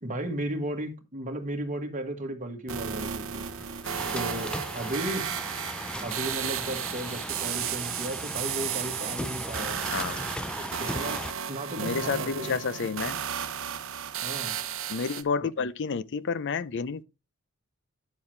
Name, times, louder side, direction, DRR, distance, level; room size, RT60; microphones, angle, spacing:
voice 1, 0.0-3.4 4.1-5.3 6.0-9.8 10.6-12.6 14.2-14.6 15.6-15.7, right 1 dB, 35° right, 1.7 m, -35 dB
sound 1, 2.7-15.2, right 9 dB, 65° right, 0.9 m, -34 dB
sound 2, 3.1-11.3, left 1 dB, 5° left, 0.4 m, -38 dB
voice 2, 11.8-13.2 14.9-17.0, left 5 dB, 60° left, 0.5 m, -30 dB
10.5 x 7.1 x 3.2 m
head